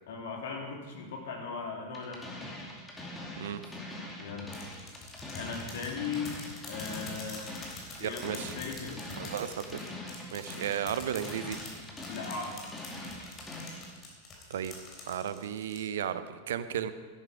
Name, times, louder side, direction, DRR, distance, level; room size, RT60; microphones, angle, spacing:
voice 1, 0.1-2.2 4.2-4.6 5.3-6.3 6.7-7.5 8.0-9.1 12.1-12.6, left 5 dB, 60° left, 0 dB, 2.6 m, -38 dB
sound 1, 1.9-13.9, left 1 dB, 10° left, 2.5 m, -43 dB
sound 2, 4.5-15.8, left 4 dB, 30° left, 3.4 m, -45 dB
voice 2, 8.0-8.5 9.2-9.5 10.3-11.6 14.5-14.7 15.1-16.9, right 9 dB, 60° right, 12 dB, 0.6 m, -34 dB
12.5 x 11.5 x 4.9 m, 1.5 s
figure-of-eight pair, 90°, 0 cm